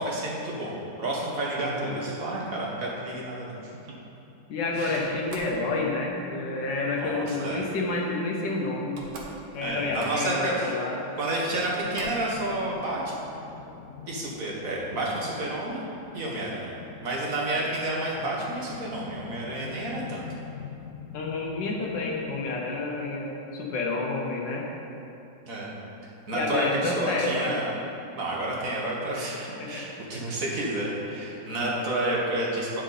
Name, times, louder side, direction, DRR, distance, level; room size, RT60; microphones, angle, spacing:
voice 1, 0.0-3.5 4.7-5.0 7.0-7.6 9.6-10.7 11.1-13.2 14.1-15.9 16.1-20.3 25.5-25.7 26.3-27.7 28.2-32.8, right 1 dB, 50° right, -4 dB, 1.6 m, -30 dB
voice 2, 1.6-2.1 4.5-9.0 9.5-11.0 21.1-24.7 26.3-27.5 29.6-29.8 31.6-31.9, left 3 dB, 70° left, -2 dB, 1.5 m, -29 dB
Slam, 4.9-5.6 7.0-7.4 8.5-8.6 8.8-9.4 9.7-10.4 11.2-11.3 11.7-12.3, right 2 dB, 65° right, 1.6 m, -44 dB
sound 1, 11.5-22.6, left 7 dB, 90° left, 0.6 m, -45 dB
9.3 x 6.4 x 4.1 m, 2.8 s
omnidirectional pair, 2.1 m